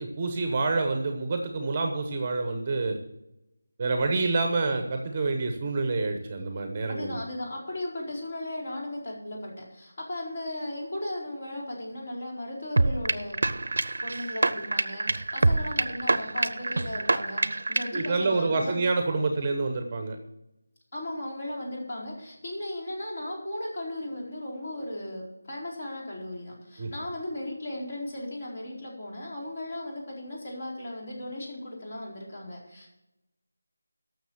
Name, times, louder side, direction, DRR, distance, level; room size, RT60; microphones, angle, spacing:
voice 1, 0.0-3.0 3.8-7.2 17.9-20.2 26.8-26.9, right 3 dB, 20° right, 5 dB, 1.0 m, -27 dB
voice 2, 6.9-13.4 14.0-18.8 20.9-33.0, left 1 dB, 40° left, -3 dB, 4.3 m, -36 dB
sound 1, 12.8-18.1, right 2 dB, 65° right, 0.7 m, -26 dB
13.0 x 6.6 x 7.2 m, 0.92 s
figure-of-eight pair, 175°, 0 cm